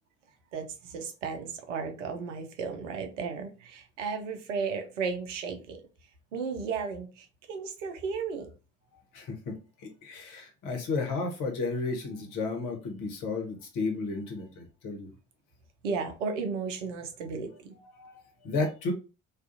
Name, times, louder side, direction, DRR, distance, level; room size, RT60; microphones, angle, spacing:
voice 1, 0.5-5.8 6.3-8.5 15.8-17.7, right 5 dB, 80° right, 6 dB, 0.6 m, -34 dB
voice 2, 9.1-15.1 17.7-18.9, left 3 dB, 60° left, 2 dB, 0.9 m, -33 dB
2.4 x 2.3 x 2.5 m, 0.32 s
figure-of-eight pair, 50°, 36 cm